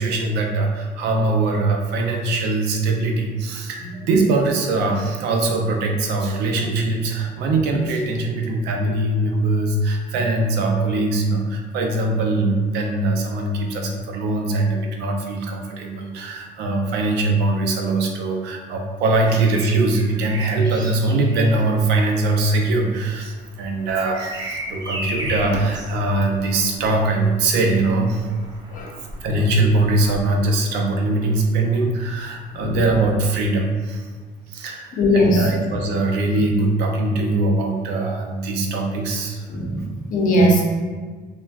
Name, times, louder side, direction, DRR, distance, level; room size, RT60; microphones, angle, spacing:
voice 1, 0.0-28.3 29.2-34.1 34.5-39.5, right 2 dB, 85° right, 2 dB, 0.5 m, -21 dB
Bird vocalization bird call bird song, 19.2-30.9 32.7-32.9, right 1 dB, 25° right, 0.5 m, -36 dB
voice 2, 34.9-35.6 39.5-40.6, equal, 50° left, -1 dB, 0.6 m, -19 dB
3.4 x 2.1 x 2.3 m, 1.5 s
cardioid pair, 110°, 17 cm